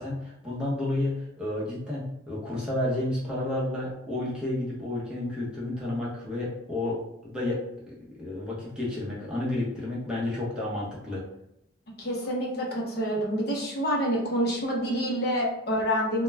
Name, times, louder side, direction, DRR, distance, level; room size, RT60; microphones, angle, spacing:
voice 1, 0.0-7.6 8.2-11.2, left 1 dB, 5° right, -7 dB, 0.7 m, -31 dB
voice 2, 12.0-16.2, equal, 50° left, -2 dB, 0.7 m, -27 dB
2.2 x 2.1 x 3.2 m, 0.80 s
head